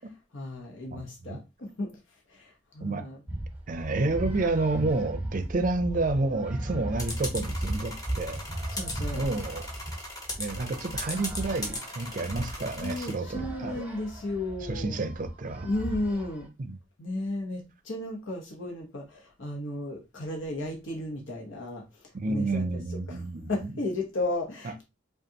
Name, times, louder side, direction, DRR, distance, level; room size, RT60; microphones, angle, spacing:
voice 1, 0.3-2.0 2.3-3.2 8.7-9.3 12.8-15.0 15.6-16.5 17.0-22.7 23.1-23.2 23.5-24.8, left 2 dB, 75° left, 1.0 m, -34 dB
voice 2, 0.9-1.4 2.8-3.1 3.7-8.4 9.1-9.6 10.4-13.8 14.6-15.7 16.6-16.8 22.1-23.7, right 2 dB, 40° right, 0.5 m, -30 dB
sound 1, 3.3-16.5, right 1 dB, 10° right, 0.8 m, -37 dB
sound 2, 7.0-13.1, left 1 dB, 20° left, 0.9 m, -38 dB
5.1 x 2.4 x 2.9 m
head